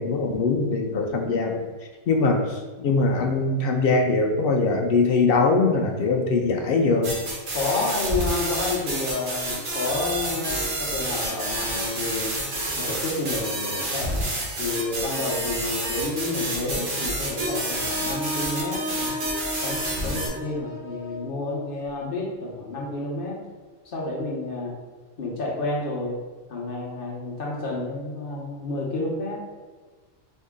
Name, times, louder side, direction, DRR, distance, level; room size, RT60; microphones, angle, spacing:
voice 1, 0.0-1.6 2.1-7.1, left 3 dB, 70° left, 2 dB, 0.5 m, -22 dB
sound 1, 7.0-20.3, right 1 dB, 85° right, 1.6 m, -29 dB
voice 2, 7.5-12.4 12.8-14.2 14.6-19.2 19.6-23.4 23.8-24.8 25.2-26.2 26.5-29.4, left 2 dB, 45° left, -3 dB, 0.9 m, -30 dB
Wind instrument woodwind instrument, 17.7-21.7, left 2 dB, 60° right, 1.7 m, -34 dB
4.6 x 2.7 x 3.6 m, 1.4 s
omnidirectional pair, 1.5 m